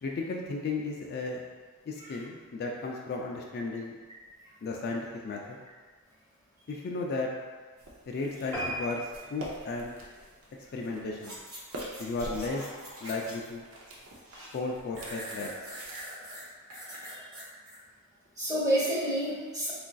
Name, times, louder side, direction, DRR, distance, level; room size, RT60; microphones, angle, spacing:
voice 1, 0.0-1.4 1.9-3.9 4.6-5.6 6.7-7.3 8.1-9.9 10.7-11.4 12.0-12.7 13.0-13.6 14.5-15.6, left 3 dB, 45° left, -1 dB, 0.3 m, -34 dB
sound 1, 7.8-16.0, right 1 dB, 60° right, 0.6 m, -46 dB
sound 2, 8.5-11.3 11.7-11.9 12.4-12.5 12.8-12.9 13.1-13.2, right 1 dB, 10° left, 0.7 m, -39 dB
sound 3, 11.2-13.6 13.9-14.6 14.9-17.8 18.3-18.4, equal, 80° right, 1.2 m, -44 dB
voice 2, 18.4-19.7, right 1 dB, 15° right, -8 dB, 1.0 m, -29 dB
3.9 x 2.5 x 2.2 m, 1.4 s
head